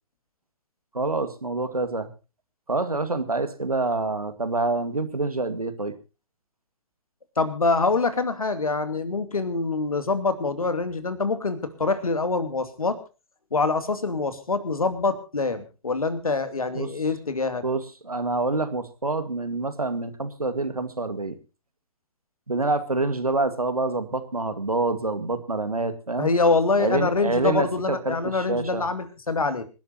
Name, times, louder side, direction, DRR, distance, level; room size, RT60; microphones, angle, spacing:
voice 1, 0.9-2.1 2.7-5.9 16.7-16.9 17.6-21.4 22.5-26.3 26.8-28.9, right 3 dB, 85° right, 10 dB, 2.1 m, -27 dB
voice 2, 7.4-13.0 13.5-17.6 26.2-29.6, left 3 dB, 75° left, 10 dB, 2.7 m, -25 dB
26.0 x 12.0 x 2.9 m, 0.31 s
figure-of-eight pair, 125°, 18 cm